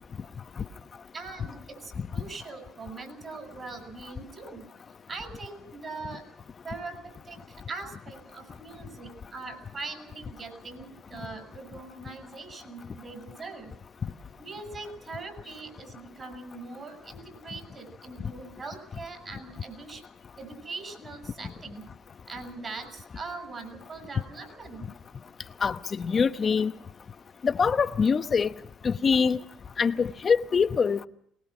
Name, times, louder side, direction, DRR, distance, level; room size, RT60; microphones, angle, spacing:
voice 1, 1.1-4.7 5.1-6.2 6.6-13.7 14.4-20.0 20.4-21.8 22.3-24.9, right 3 dB, 35° right, 6.8 m, -41 dB
voice 2, 25.6-26.7 27.4-28.5 28.8-29.4 29.8-31.1, left 5 dB, 40° left, 1.1 m, -24 dB
22.5 x 20.5 x 6.1 m
supercardioid pair, 85°, 0 cm